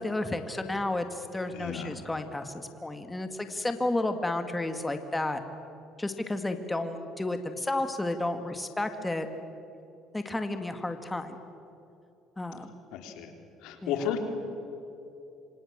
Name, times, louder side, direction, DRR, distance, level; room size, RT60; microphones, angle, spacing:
voice 1, 0.0-5.4 6.0-9.3 10.1-11.4 12.4-12.7 13.8-14.2, left 2 dB, 10° left, 7 dB, 2.1 m, -32 dB
voice 2, 1.5-1.9 12.9-13.3 13.6-14.2, left 9 dB, 80° left, 5 dB, 3.5 m, -33 dB
26.5 x 26.0 x 7.5 m, 2.9 s
cardioid pair, 95°, 0 cm